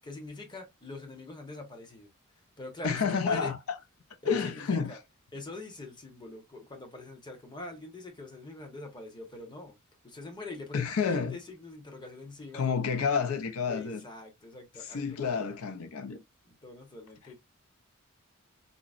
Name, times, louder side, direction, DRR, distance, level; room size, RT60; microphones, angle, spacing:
voice 1, 0.0-2.1 2.6-3.5 4.2-5.0 5.3-9.8 10.0-12.6 13.7-15.4 16.4-17.3, left 2 dB, 20° left, 0.8 m, -44 dB
voice 2, 2.8-3.6 4.2-5.0 10.7-11.4 12.5-14.0 14.8-16.2, left 6 dB, 90° left, 0.5 m, -29 dB
3.8 x 2.0 x 2.3 m
head